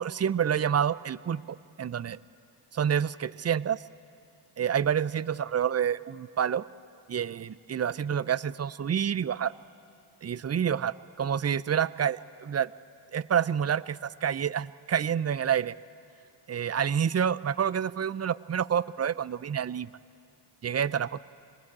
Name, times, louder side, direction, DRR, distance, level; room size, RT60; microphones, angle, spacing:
voice 1, 0.0-1.4 1.8-2.2 2.7-3.8 4.6-6.6 7.1-9.5 10.2-12.7 13.1-15.7 16.5-19.9 20.6-21.2, right 8 dB, 30° right, 19 dB, 0.5 m, -28 dB
20.0 x 19.0 x 8.7 m, 2.5 s
supercardioid pair, 60°, 49 cm